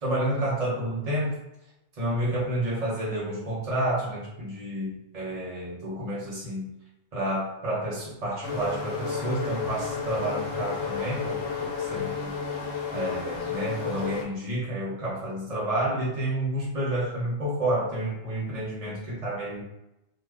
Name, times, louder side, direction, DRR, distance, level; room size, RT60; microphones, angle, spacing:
voice 1, 0.0-1.4 2.0-6.7 7.1-12.3 12.9-19.6, right 1 dB, 35° right, -8 dB, 0.8 m, -30 dB
sound 1, 8.4-14.2, left 6 dB, 85° left, 1.0 m, -32 dB
2.5 x 2.3 x 3.2 m, 0.89 s
omnidirectional pair, 1.2 m